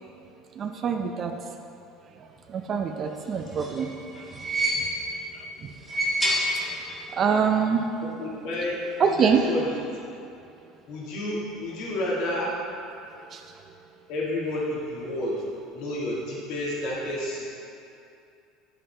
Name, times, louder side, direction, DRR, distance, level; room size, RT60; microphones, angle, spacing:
voice 1, 0.6-1.3 2.5-3.9 5.3-5.7 7.1-7.8 9.0-9.4 13.3-13.4, right 6 dB, 35° right, 4 dB, 0.5 m, -25 dB
sound 1, 3.3-5.2 5.7-7.1 7.4-7.5 8.6-8.7, equal, 10° left, 1.6 m, -28 dB
voice 2, 8.2-8.8 9.0-9.8 10.9-12.5 14.1-15.4 15.7-17.5, left 1 dB, 65° left, -6 dB, 1.8 m, -30 dB
9.5 x 7.5 x 3.3 m, 2.6 s
supercardioid pair, 130°, 0 cm